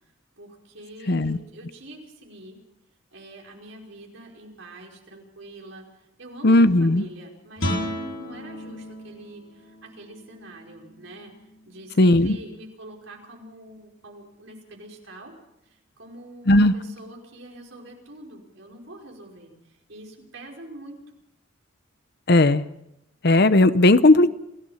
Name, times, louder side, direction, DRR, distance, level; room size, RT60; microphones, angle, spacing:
voice 1, 0.4-2.6 3.1-5.8 6.2-11.3 11.7-15.3 16.0-19.5 19.9-21.0, right 1 dB, 70° right, 0 dB, 5.2 m, -44 dB
voice 2, 1.1-1.4 6.4-7.1 12.0-12.4 16.5-16.7 22.3-22.6 23.2-24.3, left 2 dB, 55° left, 13 dB, 0.8 m, -16 dB
Guitar, 7.6-13.1, equal, 80° left, 3.4 m, -35 dB
28.0 x 16.0 x 5.8 m, 0.85 s
head